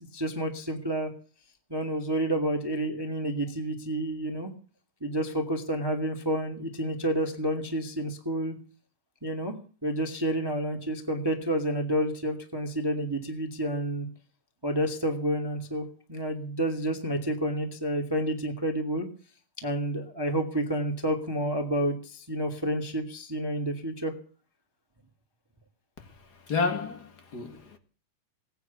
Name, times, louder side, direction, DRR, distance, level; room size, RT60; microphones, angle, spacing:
voice 1, 0.1-1.1 1.7-4.5 5.0-8.5 9.2-9.5 9.8-14.1 14.6-19.1 19.6-24.1, right 1 dB, 10° right, 1.8 m, -29 dB
voice 2, 26.3-27.8, left 4 dB, 40° left, 1.8 m, -31 dB
18.5 x 9.7 x 8.1 m
omnidirectional pair, 3.8 m